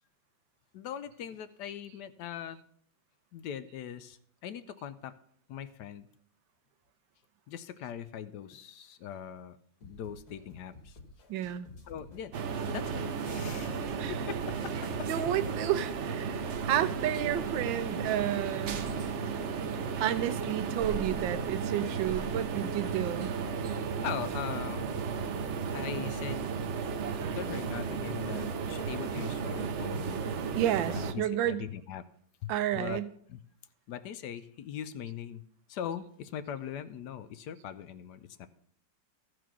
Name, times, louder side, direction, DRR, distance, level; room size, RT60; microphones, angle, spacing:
voice 1, 0.7-2.6 3.3-5.1 5.5-6.1 7.5-9.6 9.8-11.0 11.8-12.3 12.7-13.8 14.1-15.1 24.0-24.9 25.7-26.5 27.3-30.3 30.9-32.0 32.4-33.0 33.3-33.4 33.9-35.4 35.7-38.5, left 9 dB, 75° left, 13 dB, 1.1 m, -41 dB
sound 1, 9.8-15.4, left 2 dB, 55° left, 2.3 m, -50 dB
voice 2, 11.3-11.7 14.0-14.1 15.1-18.8 20.0-23.3 30.5-31.7 32.5-33.1, right 11 dB, 90° right, 13 dB, 1.4 m, -31 dB
sound 2, 12.3-31.1, right 5 dB, 60° right, 0.7 m, -34 dB
14.0 x 4.7 x 6.0 m, 0.62 s
omnidirectional pair, 2.0 m